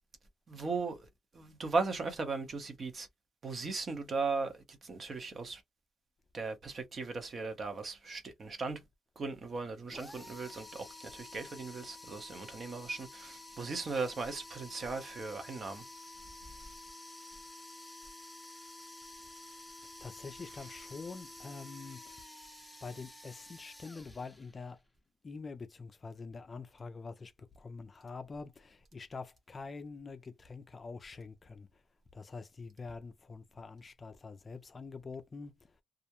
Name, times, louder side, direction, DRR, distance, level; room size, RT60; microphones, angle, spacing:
voice 1, 0.5-1.1 1.3-3.1 3.4-5.6 6.3-8.8 9.2-15.8, right 4 dB, 45° right, 0.8 m, -37 dB
sound 1, 9.9-24.8, left 2 dB, 5° left, 0.7 m, -51 dB
voice 2, 20.0-22.2 22.8-24.8 25.2-31.8 32.1-35.8, left 4 dB, 35° left, 0.4 m, -46 dB
2.4 x 2.1 x 2.9 m
cardioid pair, 90°, 0 cm